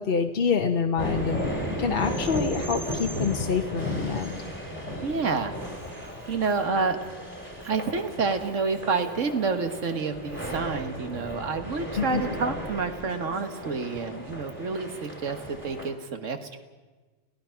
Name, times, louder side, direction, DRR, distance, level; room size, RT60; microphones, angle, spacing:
voice 1, 0.0-1.4 1.8-4.3 12.0-12.2, left 6 dB, 50° left, 4 dB, 1.1 m, -26 dB
sound 1, 1.0-15.9, equal, 30° right, 3.2 m, -35 dB
voice 2, 5.0-5.6 5.9-7.0 7.6-16.6, right 4 dB, 85° right, 8 dB, 1.8 m, -29 dB
29.5 x 16.0 x 5.8 m, 1.3 s
omnidirectional pair, 1.3 m